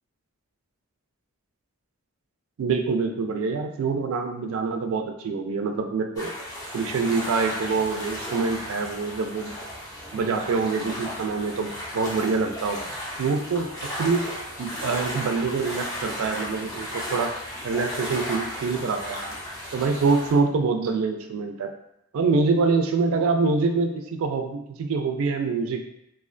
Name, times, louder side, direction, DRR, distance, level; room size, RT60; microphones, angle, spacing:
voice 1, 2.6-6.3 6.7-9.6 10.1-12.9 13.2-13.7 14.0-14.3 14.6-17.3 17.6-19.2 19.7-21.7 22.1-25.8, right 4 dB, 70° right, 5 dB, 0.3 m, -25 dB
sound 1, 6.2-20.3, equal, 15° left, 0.4 m, -35 dB
2.4 x 2.1 x 2.5 m, 0.80 s
head